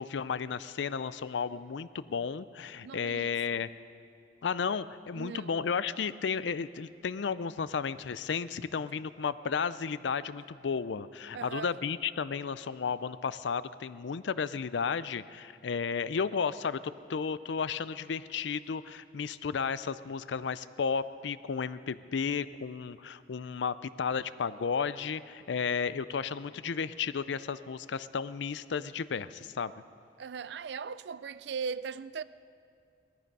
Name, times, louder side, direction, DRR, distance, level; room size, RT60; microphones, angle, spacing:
voice 1, 0.0-3.7 4.4-29.7, left 6 dB, 70° left, 0.4 m, -33 dB
voice 2, 2.8-3.6 5.2-5.7 11.3-11.7 30.2-32.2, right 6 dB, 65° right, 0.4 m, -39 dB
19.0 x 13.5 x 5.4 m
head